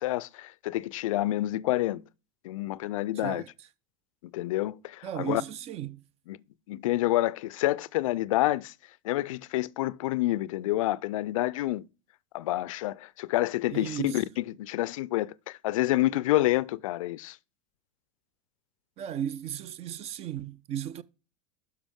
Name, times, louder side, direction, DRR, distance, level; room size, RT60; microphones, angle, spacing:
voice 1, 0.0-2.0 2.4-3.4 4.3-5.4 6.3-6.4 6.7-8.7 9.0-11.8 12.3-17.4, left 16 dB, 70° left, 0.4 m, -28 dB
voice 2, 5.0-6.0 13.7-14.2 19.0-21.0, right 10 dB, 35° right, 0.5 m, -35 dB
12.0 x 4.7 x 3.6 m
hypercardioid pair, 95°, 18 cm